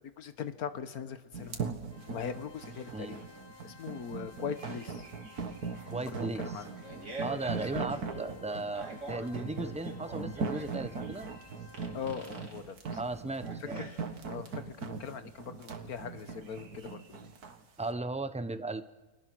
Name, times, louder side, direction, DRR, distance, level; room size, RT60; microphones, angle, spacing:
voice 1, 0.2-1.6 2.1-3.3 3.6-5.1 6.1-6.9 7.3-7.4 11.9-13.0 13.8-17.3, left 7 dB, 75° left, 10 dB, 1.7 m, -41 dB
sound 1, 1.3-17.6, right 5 dB, 85° right, 2.1 m, -39 dB
Organ, 1.9-12.6, left 5 dB, 45° left, 1.4 m, -56 dB
voice 2, 5.9-6.5 7.2-11.3 12.9-13.8 17.8-18.8, right 2 dB, 5° right, 10 dB, 0.5 m, -36 dB
Fart, 6.8-14.5, right 2 dB, 55° right, 3.2 m, -46 dB
29.5 x 20.5 x 6.2 m, 1.2 s
omnidirectional pair, 1.6 m